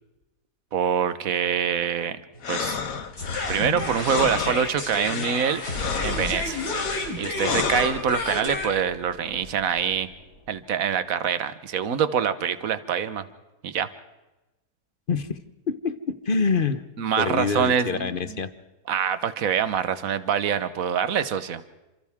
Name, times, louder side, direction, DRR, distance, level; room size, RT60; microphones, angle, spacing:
voice 1, 0.7-2.2 2.5-2.8 3.5-5.6 6.0-6.6 7.2-10.1 10.5-13.3 13.6-13.9 17.0-18.4 18.9-21.6, right 8 dB, 60° right, 13 dB, 1.5 m, -25 dB
sound 1, 2.3-8.4, left 6 dB, 60° left, 1.6 m, -31 dB
sound 2, 3.2-10.3, left 2 dB, 80° left, 4.3 m, -31 dB
voice 2, 15.1-15.4 15.7-16.8 17.2-18.5, left 5 dB, 40° left, 12 dB, 1.0 m, -26 dB
29.0 x 27.0 x 3.6 m, 1.0 s
omnidirectional pair, 1.7 m